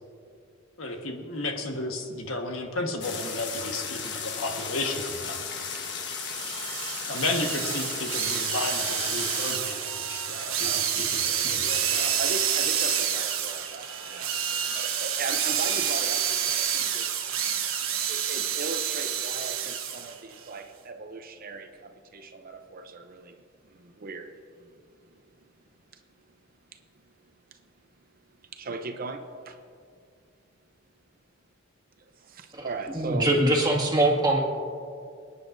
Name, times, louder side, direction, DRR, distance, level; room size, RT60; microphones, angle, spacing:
voice 1, 0.8-5.4 7.1-10.7 11.0-12.1 18.4-18.5, left 2 dB, 75° left, 1.4 m, -33 dB
sound 1, 3.0-9.6, left 5 dB, 55° left, 1.3 m, -35 dB
sound 2, 6.2-20.1, right 8 dB, 80° right, 1.2 m, -28 dB
voice 2, 10.3-11.1 12.2-17.2 18.1-25.3 25.9-26.0 26.7-27.1 27.5-27.6 28.0-28.1 28.4-29.6 32.0-33.3, right 3 dB, 45° right, 0.6 m, -39 dB
voice 3, 32.9-34.4, right 1 dB, 20° right, 2.0 m, -22 dB
28.0 x 9.7 x 2.6 m
head